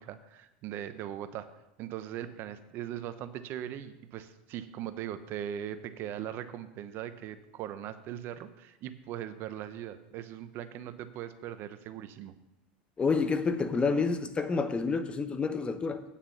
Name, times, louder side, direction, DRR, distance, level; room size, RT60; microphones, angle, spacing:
voice 1, 0.0-1.5 1.8-12.3, right 11 dB, 50° right, 12 dB, 0.8 m, -40 dB
voice 2, 13.0-16.0, left 4 dB, 20° left, 10 dB, 0.9 m, -29 dB
9.1 x 7.1 x 7.1 m, 0.94 s
hypercardioid pair, 105°, 5 cm